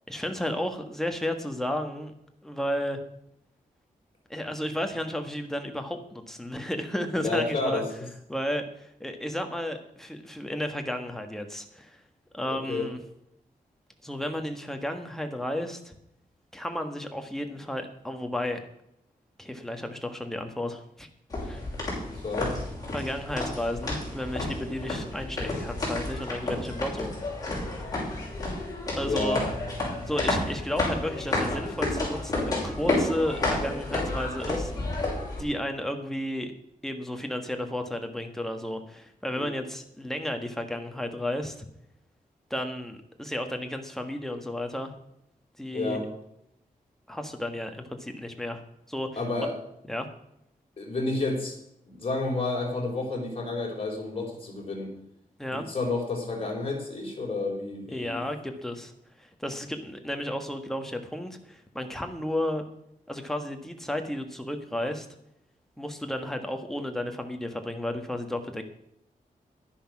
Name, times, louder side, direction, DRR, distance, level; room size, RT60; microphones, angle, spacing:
voice 1, 0.1-2.1 2.4-3.0 4.3-7.8 8.3-12.0 12.3-13.0 14.0-15.9 16.5-18.6 19.4-21.1 21.4-21.6 22.9-27.1 28.9-29.4 30.1-34.9 35.4-36.5 36.8-41.7 42.5-44.9 45.6-46.0 47.1-48.6 48.9-49.5 49.8-50.1 55.4-55.7 57.9-58.9 59.2-62.6 63.1-65.1 65.8-68.6, left 1 dB, 5° left, 5 dB, 1.4 m, -33 dB
voice 2, 7.2-7.9 12.5-12.9 22.2-22.5 29.0-29.5 39.4-39.5 45.7-46.1 49.2-49.5 50.8-51.6 51.9-54.9 55.5-58.2, left 2 dB, 40° left, 0 dB, 4.0 m, -30 dB
sound 1, 21.3-35.4, left 2 dB, 25° left, 6.2 m, -31 dB
11.0 x 10.0 x 6.1 m, 0.77 s
wide cardioid pair, 130°, 15 cm